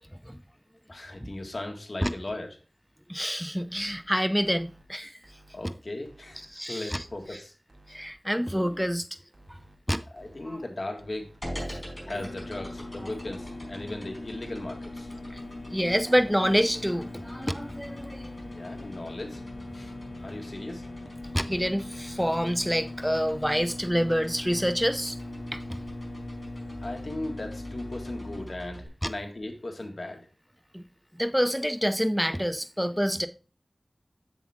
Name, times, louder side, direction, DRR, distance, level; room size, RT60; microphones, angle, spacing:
voice 1, 0.9-2.5 5.5-7.5 10.1-11.3 12.1-15.1 18.5-19.4 19.7-19.9 20.2-20.8 26.8-30.3, left 2 dB, 60° left, 1.8 m, -37 dB
voice 2, 3.1-5.1 6.5-7.0 7.9-9.1 9.9-10.0 12.2-12.3 15.7-18.3 21.3-25.2 25.5-25.6 29.0-29.1 30.7-30.8 31.1-33.3, equal, ahead, 0.6 m, -27 dB
sound 1, 3.6-4.0 4.4-4.8 5.2-5.6 6.0-6.5 6.9-7.3 7.7-8.1 8.5-8.9 9.3-9.8 10.2-10.6 11.0-11.4 11.8-12.2 12.6-13.0 13.4-13.9 14.3-14.7 15.1-15.5 15.9-16.3 16.7-17.1 17.5-18.0 18.3-18.8 19.2-19.3 19.6-19.7 20.0-20.1 20.4-20.5 20.8-20.9 21.2-21.3 21.6-21.7 22.0-22.1 22.4-22.5 22.8-22.9, right 1 dB, 80° right, 2.1 m, -56 dB
sound 2, 11.4-28.9, equal, 20° left, 4.8 m, -43 dB
sound 3, 12.2-28.4, left 2 dB, 85° left, 0.9 m, -41 dB
7.4 x 7.2 x 3.6 m
wide cardioid pair, 55°, 0 cm